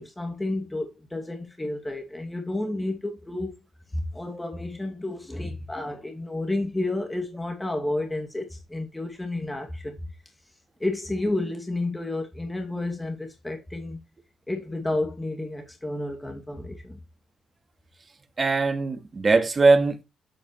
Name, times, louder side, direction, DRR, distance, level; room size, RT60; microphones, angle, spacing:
voice 1, 0.0-3.5 3.9-10.3 10.8-14.0 14.5-17.0, left 2 dB, 15° left, 2.5 m, -31 dB
voice 2, 18.4-20.0, right 3 dB, 35° right, 2.2 m, -20 dB
9.2 x 8.5 x 3.2 m
hypercardioid pair, 45°, 0 cm